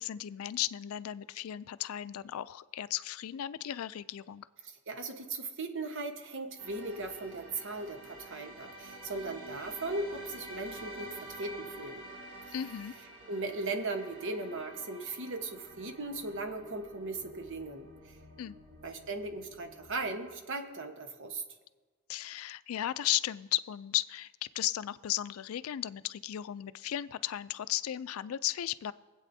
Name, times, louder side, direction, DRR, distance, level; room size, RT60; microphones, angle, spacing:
voice 1, 0.0-4.5 12.5-12.9 18.4-18.5 22.1-28.9, left 12 dB, 90° left, 16 dB, 0.4 m, -35 dB
voice 2, 4.6-12.1 12.5-12.6 13.3-18.2 18.8-21.4, right 3 dB, 60° right, 5 dB, 1.1 m, -38 dB
sound 1, 6.6-20.1, right 1 dB, 85° right, 2.6 m, -49 dB
24.0 x 8.3 x 2.7 m, 1.3 s
head